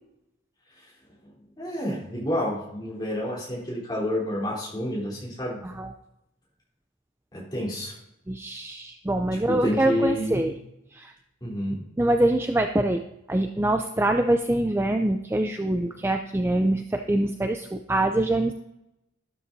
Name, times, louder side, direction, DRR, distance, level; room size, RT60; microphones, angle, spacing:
voice 1, 1.6-5.6 7.3-7.9 9.5-10.4 11.4-11.8, equal, 20° left, -5 dB, 3.5 m, -29 dB
voice 2, 8.3-10.5 10.9-11.1 12.0-13.0 13.3-18.5, right 1 dB, 10° right, 5 dB, 0.4 m, -24 dB
13.0 x 12.0 x 2.7 m, 0.86 s
head